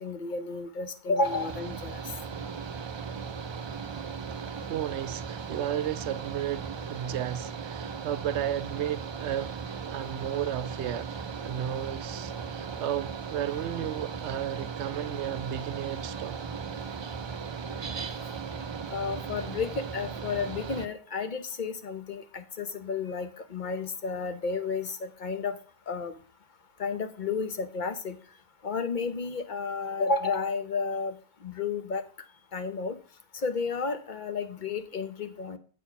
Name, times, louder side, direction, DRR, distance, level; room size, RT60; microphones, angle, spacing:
voice 1, 0.0-2.0 18.9-25.6 25.9-26.2 26.8-28.2 28.6-31.1 31.4-32.0 32.5-33.0 33.3-35.6, left 4 dB, 50° left, 0.9 m, -32 dB
Mechanical fan, 1.2-20.9, right 6 dB, 50° right, 0.3 m, -37 dB
voice 2, 4.7-9.5 9.9-11.1 11.4-16.4, right 11 dB, 85° right, 0.9 m, -33 dB
8.4 x 4.3 x 5.6 m
omnidirectional pair, 1.1 m